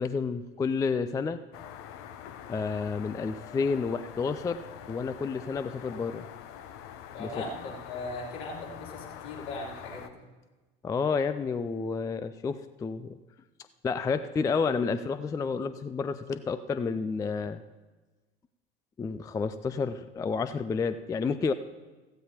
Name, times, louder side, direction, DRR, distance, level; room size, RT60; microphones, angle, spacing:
voice 1, 0.0-1.4 2.5-6.3 7.2-7.3 10.8-13.2 13.8-17.6 19.0-21.5, left 5 dB, 10° left, 12 dB, 0.3 m, -30 dB
sound 1, 1.5-10.1, left 9 dB, 45° left, 0.8 m, -45 dB
voice 2, 7.1-10.1, left 2 dB, 65° left, -4 dB, 3.4 m, -39 dB
15.5 x 15.0 x 2.9 m, 1.2 s
figure-of-eight pair, 70°, 30 cm